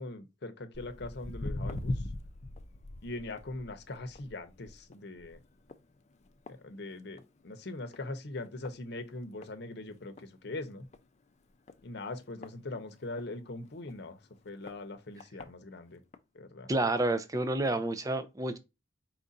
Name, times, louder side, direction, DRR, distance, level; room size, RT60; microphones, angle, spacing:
voice 1, 0.0-2.0 3.0-5.4 6.5-10.9 11.8-14.2 14.4-16.0 16.3-16.7, left 2 dB, 60° left, 0.7 m, -41 dB
Walk footsteps, 0.7-7.4 7.7-8.1 8.6-8.7 9.4-9.5 9.9-10.0 10.2-10.3 10.8-11.0 11.7-13.3 13.9-14.0 14.7-14.8 15.2-15.5 16.1-16.2, left 1 dB, 35° left, 0.5 m, -40 dB
voice 2, 16.7-18.6, right 2 dB, 20° right, 0.5 m, -29 dB
4.5 x 2.5 x 3.9 m
head